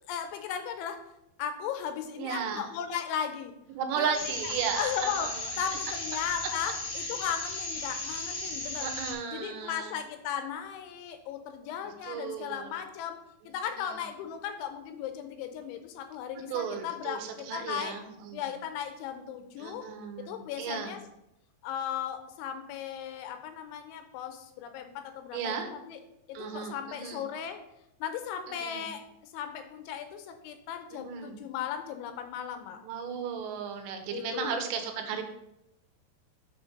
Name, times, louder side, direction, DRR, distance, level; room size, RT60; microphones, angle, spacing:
voice 1, 0.1-1.0 1.4-3.5 4.0-4.1 4.8-5.3 5.6-8.9 9.3-13.2 13.5-17.9 18.3-19.9 20.3-21.0 21.6-26.0 26.4-27.6 28.0-32.8 34.1-34.6, left 8 dB, 80° left, 7 dB, 2.9 m, -36 dB
voice 2, 2.2-2.7 3.7-5.6 7.0-7.1 8.8-9.9 11.8-12.7 13.7-14.0 16.5-18.5 19.6-21.0 25.3-25.7 26.3-27.2 28.5-28.9 31.0-31.4 32.8-35.2, right 7 dB, 85° right, 5 dB, 3.4 m, -35 dB
sound 1, 4.1-9.1, left 2 dB, 40° left, 2.0 m, -36 dB
7.1 x 4.3 x 5.9 m, 0.83 s
omnidirectional pair, 5.7 m